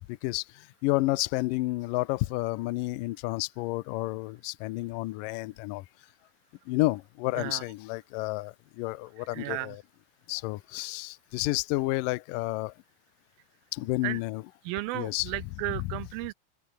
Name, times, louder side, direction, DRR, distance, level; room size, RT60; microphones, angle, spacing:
voice 1, 0.1-5.9 6.7-9.8 10.3-12.7 13.7-14.5 14.9-15.3 15.7-16.1, left 20 dB, 75° left, 2.1 m, -31 dB
voice 2, 9.3-9.7 14.0-14.2 14.7-16.3, right 18 dB, 85° right, 2.1 m, -34 dB
open air
omnidirectional pair, 4.6 m